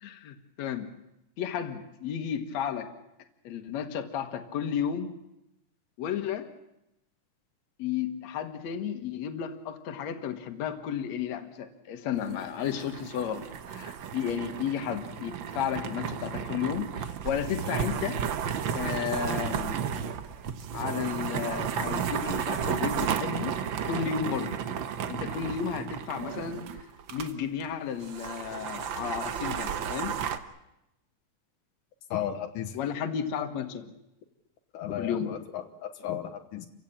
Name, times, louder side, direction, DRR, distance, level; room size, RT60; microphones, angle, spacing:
voice 1, 0.0-0.9 1.4-2.9 3.4-5.1 6.0-6.5 7.8-18.2 18.7-20.1 20.7-23.6 23.8-24.6 25.1-26.7 27.1-30.2 32.7-33.9 35.0-35.4, left 8 dB, 60° left, 7 dB, 2.6 m, -33 dB
sound 1, 12.1-27.3 27.6-27.7 28.0-30.4, right 8 dB, 75° right, 1.1 m, -33 dB
voice 2, 32.1-32.8 34.7-36.7, left 10 dB, 85° left, 6 dB, 2.8 m, -34 dB
28.5 x 16.0 x 8.8 m, 0.88 s
omnidirectional pair, 3.6 m